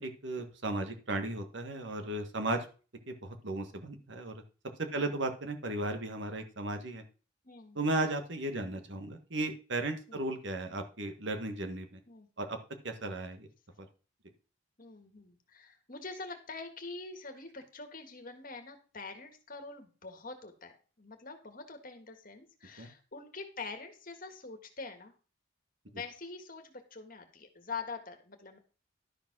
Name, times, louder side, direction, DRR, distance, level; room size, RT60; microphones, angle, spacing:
voice 1, 0.0-2.7 3.1-4.3 4.9-7.0 7.7-12.0 12.4-12.6 12.8-13.5 13.8-13.9 22.8-22.9, right 2 dB, 60° right, 5 dB, 1.5 m, -35 dB
voice 2, 7.4-7.8 10.1-10.3 12.1-12.3 14.8-25.1 25.9-28.6, left 4 dB, 40° left, 5 dB, 1.8 m, -45 dB
12.0 x 5.1 x 6.1 m, 0.36 s
head